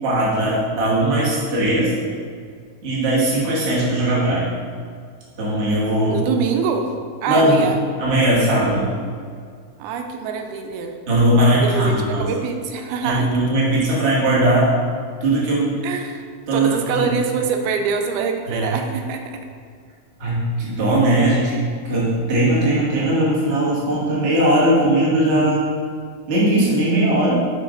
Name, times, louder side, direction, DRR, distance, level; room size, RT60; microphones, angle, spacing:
voice 1, 0.0-1.9 2.8-4.5 5.4-6.2 7.3-7.6 8.0-8.9 11.1-12.3 13.0-14.7 15.2-15.7 16.5-17.1 18.5-18.7 20.2-21.6 21.8-25.7 26.3-27.3, right 1 dB, 50° right, -7 dB, 0.8 m, -19 dB
voice 2, 6.1-6.9 7.2-7.8 9.8-11.0 11.5-13.7 15.8-16.3 16.5-19.4, right 5 dB, 85° right, 4 dB, 2.1 m, -24 dB
5.4 x 5.0 x 3.7 m, 2.1 s
omnidirectional pair, 3.6 m